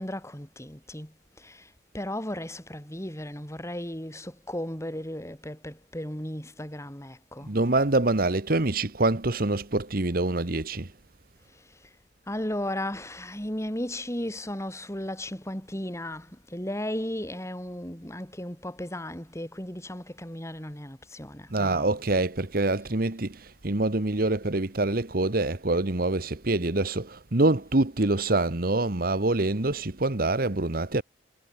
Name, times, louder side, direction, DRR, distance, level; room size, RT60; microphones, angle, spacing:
voice 1, 0.0-7.6 11.5-12.0 12.3-22.0, left 1 dB, 15° left, 5.4 m, -35 dB
voice 2, 7.4-10.9 21.5-31.0, right 2 dB, 55° right, 1.4 m, -25 dB
head